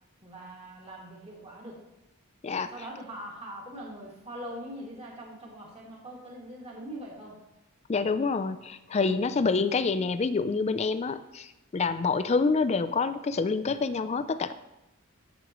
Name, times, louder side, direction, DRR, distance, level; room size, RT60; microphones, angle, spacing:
voice 1, 0.2-1.8 2.7-7.4 9.0-9.4, right 1 dB, 30° right, -3 dB, 2.1 m, -42 dB
voice 2, 7.9-14.5, left 4 dB, 30° left, 12 dB, 0.4 m, -27 dB
15.0 x 6.3 x 3.0 m, 0.95 s
head